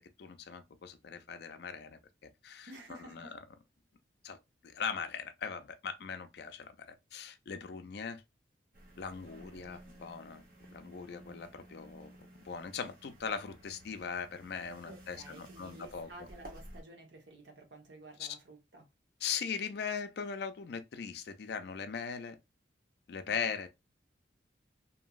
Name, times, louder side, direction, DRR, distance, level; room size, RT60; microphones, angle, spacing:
voice 1, 0.0-2.7 3.1-3.3 4.2-4.4 4.6-8.2 9.0-16.1 18.2-18.3 19.2-22.4 23.1-23.7, left 6 dB, 65° left, 0.4 m, -40 dB
voice 2, 2.7-3.4 9.3-9.8 14.9-18.9 23.3-23.5, right 2 dB, 80° right, 0.9 m, -53 dB
sound 1, 8.7-16.8, right 1 dB, 55° right, 0.9 m, -54 dB
2.9 x 2.6 x 2.3 m
head